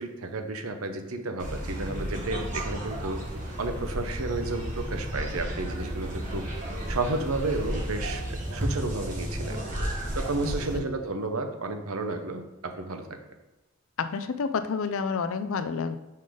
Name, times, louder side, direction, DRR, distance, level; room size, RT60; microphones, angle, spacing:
voice 1, 0.0-3.2 3.6-6.5 6.9-9.8 10.2-13.2, right 3 dB, 85° right, 6 dB, 0.8 m, -32 dB
sound 1, 1.4-10.8, equal, 35° right, 1.3 m, -33 dB
voice 2, 14.0-16.0, left 5 dB, 70° left, 11 dB, 0.4 m, -29 dB
5.5 x 3.9 x 5.0 m, 1.1 s
head